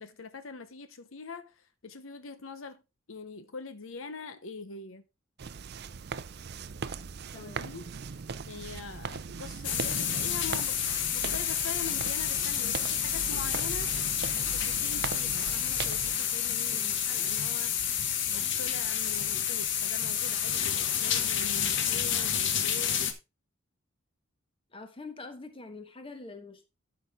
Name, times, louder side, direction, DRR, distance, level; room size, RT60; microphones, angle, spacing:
voice 1, 0.0-2.8 3.1-5.0 7.3-7.9 8.5-10.8 11.1-13.9 14.4-17.7 18.3-23.0, left 4 dB, 85° left, 0.9 m, -43 dB
sound 1, 5.4-16.2, right 5 dB, 55° right, 0.5 m, -39 dB
voice 2, 7.3-7.7 16.7-17.0 24.7-26.7, left 3 dB, 25° left, 1.3 m, -45 dB
sound 2, 9.6-23.1, left 9 dB, 60° left, 1.1 m, -29 dB
12.5 x 5.7 x 3.5 m
head